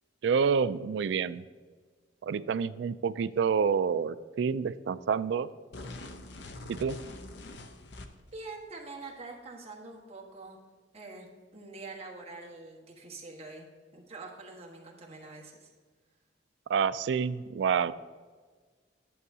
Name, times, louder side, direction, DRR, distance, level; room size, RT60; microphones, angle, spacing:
voice 1, 0.2-1.4 2.2-5.5 6.7-7.0 16.7-17.9, right 6 dB, 70° right, 16 dB, 0.3 m, -28 dB
sound 1, 5.7-8.4, left 2 dB, 65° left, 0.7 m, -44 dB
voice 2, 8.3-10.6 10.9-13.7 13.9-15.7, right 3 dB, 35° right, -1 dB, 1.4 m, -45 dB
11.0 x 7.6 x 2.7 m, 1.5 s
head